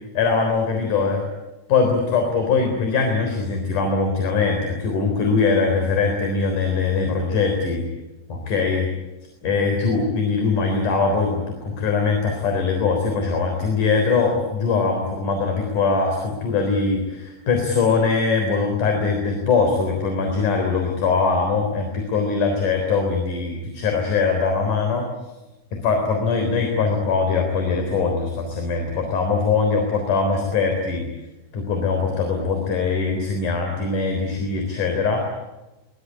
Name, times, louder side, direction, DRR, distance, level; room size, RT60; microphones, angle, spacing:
voice 1, 0.1-1.2 1.7-7.8 8.3-8.9 9.4-25.1 25.8-31.0 31.5-35.2, left 4 dB, 45° left, 3 dB, 4.9 m, -22 dB
23.0 x 21.5 x 9.8 m, 1.1 s
omnidirectional pair, 5.4 m